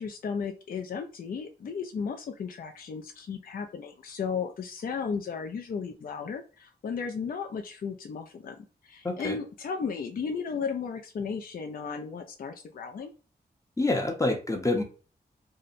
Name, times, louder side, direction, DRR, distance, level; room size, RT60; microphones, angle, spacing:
voice 1, 0.0-8.6 8.8-13.1, left 5 dB, 55° left, 4 dB, 0.4 m, -35 dB
voice 2, 9.0-9.4 13.8-14.8, left 2 dB, 20° left, 3 dB, 0.7 m, -27 dB
2.7 x 2.0 x 2.5 m, 0.35 s
cardioid pair, 50°, 17 cm